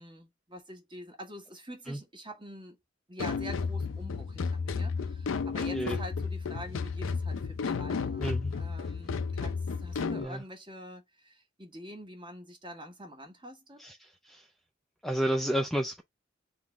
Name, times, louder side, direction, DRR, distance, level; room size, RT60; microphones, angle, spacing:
voice 1, 0.0-2.8 3.1-13.8, equal, 25° right, 1.2 m, -46 dB
sound 1, 3.2-10.2, left 5 dB, 75° left, 0.5 m, -32 dB
voice 2, 8.2-8.5 10.2-10.4 13.8-14.5 15.0-16.0, right 1 dB, ahead, 0.4 m, -31 dB
3.8 x 3.0 x 3.4 m
head